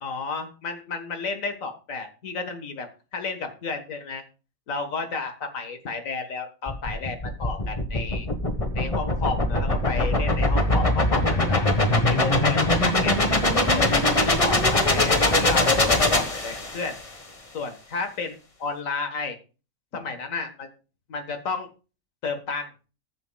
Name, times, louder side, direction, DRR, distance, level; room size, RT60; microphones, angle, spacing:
voice 1, 0.0-4.2 4.7-8.3 8.7-11.7 12.0-13.1 13.7-17.0 17.5-19.4 19.9-20.7 21.1-21.7 22.2-22.7, left 4 dB, 70° left, 6 dB, 1.8 m, -32 dB
sound 1, 6.7-17.0, left 2 dB, 25° left, 1.3 m, -22 dB
19.5 x 7.1 x 2.3 m, 0.34 s
omnidirectional pair, 1.5 m